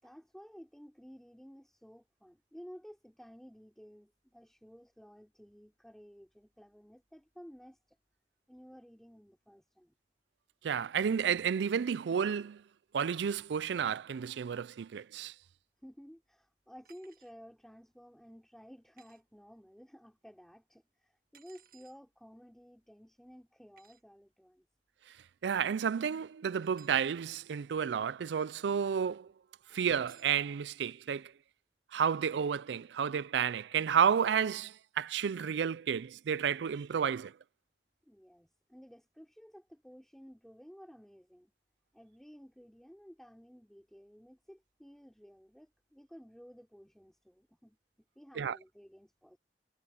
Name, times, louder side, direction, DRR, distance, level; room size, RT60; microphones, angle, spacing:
voice 1, 0.0-8.0 8.5-9.9 15.8-24.7 29.7-29.8 38.1-41.5 41.9-47.8 48.1-49.4, equal, ahead, 3.1 m, -54 dB
voice 2, 10.6-12.6 12.9-15.3 25.4-29.3 29.7-31.3 31.9-37.3 48.4-48.6, right 7 dB, 75° right, 0.4 m, -31 dB
sound 1, 16.8-17.3 19.0-19.2 21.3-22.0 23.8-24.0 26.6-27.1 30.1-30.4, right 10 dB, 55° right, 1.4 m, -61 dB
head